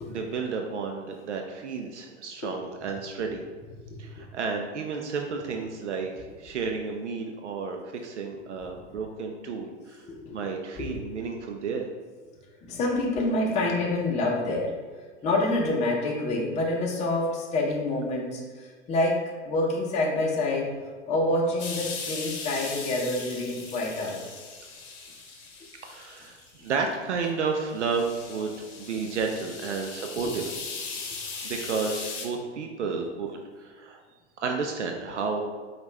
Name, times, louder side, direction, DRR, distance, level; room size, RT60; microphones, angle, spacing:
voice 1, 0.1-3.4 4.0-10.0 10.3-11.9 25.8-30.4 31.4-34.0 34.4-35.4, right 5 dB, 70° right, 3 dB, 0.6 m, -32 dB
voice 2, 10.1-10.5 10.8-11.1 12.6-14.8 15.2-20.8 21.1-24.3 30.1-30.4, left 2 dB, 20° left, -2 dB, 0.7 m, -27 dB
sound 1, 21.6-26.8 27.3-27.4 27.8-32.3, left 4 dB, 45° left, 1.0 m, -39 dB
5.1 x 2.4 x 3.2 m, 1.5 s
figure-of-eight pair, 100°, 36 cm